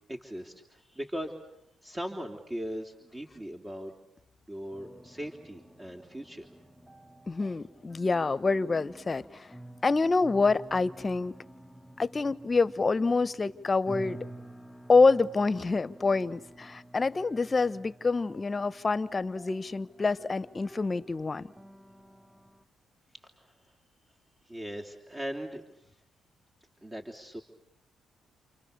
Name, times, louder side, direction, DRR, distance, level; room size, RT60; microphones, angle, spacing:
voice 1, 0.1-1.3 1.8-3.9 4.5-6.5 23.2-23.5 24.4-25.8 26.8-27.4, equal, 20° right, 3.3 m, -39 dB
sound 1, 4.7-22.6, right 1 dB, ahead, 1.3 m, -50 dB
voice 2, 7.3-9.5 9.8-11.3 12.0-14.2 14.9-21.5, left 3 dB, 30° left, 1.2 m, -26 dB
29.5 x 28.5 x 6.8 m
supercardioid pair, 65°, 0 cm